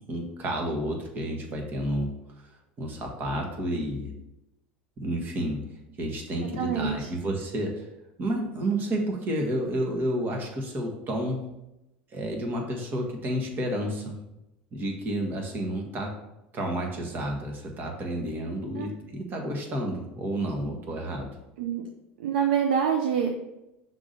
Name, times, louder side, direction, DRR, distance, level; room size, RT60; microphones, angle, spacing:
voice 1, 0.0-2.5 2.8-4.1 5.0-5.6 6.0-7.9 8.2-11.5 12.1-14.1 14.7-16.1 16.5-21.3, right 1 dB, 35° right, 1 dB, 1.6 m, -30 dB
voice 2, 6.6-7.1 18.8-18.9 21.6-21.8 22.2-23.3, right 8 dB, 70° right, 2 dB, 0.6 m, -26 dB
5.9 x 3.8 x 5.4 m, 0.91 s
hypercardioid pair, 75°, 6 cm